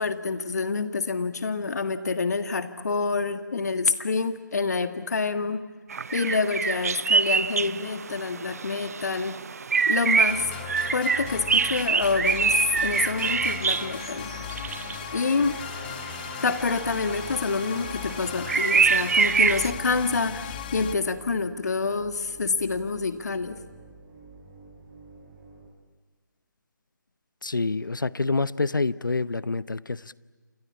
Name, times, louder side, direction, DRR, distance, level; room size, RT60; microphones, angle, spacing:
voice 1, 0.0-5.6 6.1-9.4 9.9-10.5 10.9-14.3 15.1-15.6 16.4-23.6, left 4 dB, 55° left, 10 dB, 1.6 m, -27 dB
sound 1, 5.9-19.7, right 5 dB, 50° right, 0.7 m, -26 dB
sound 2, 10.3-20.9, left 9 dB, 30° left, 1.3 m, -37 dB
sound 3, 19.4-25.7, right 3 dB, 15° right, 7.9 m, -50 dB
voice 2, 27.4-30.1, left 3 dB, 80° left, 18 dB, 0.9 m, -27 dB
28.0 x 24.5 x 8.5 m, 1.5 s
figure-of-eight pair, 150°, 11 cm